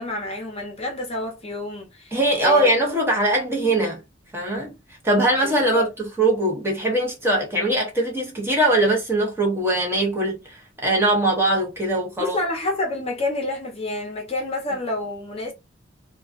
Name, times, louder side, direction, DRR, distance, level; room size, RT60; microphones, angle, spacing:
voice 1, 0.0-2.8 5.4-5.9 12.2-15.5, left 1 dB, 30° left, 0.7 m, -28 dB
voice 2, 2.1-4.0 4.3-4.8 5.0-5.9 6.2-12.4, right 1 dB, 15° right, 0.7 m, -21 dB
2.3 x 2.3 x 2.4 m
head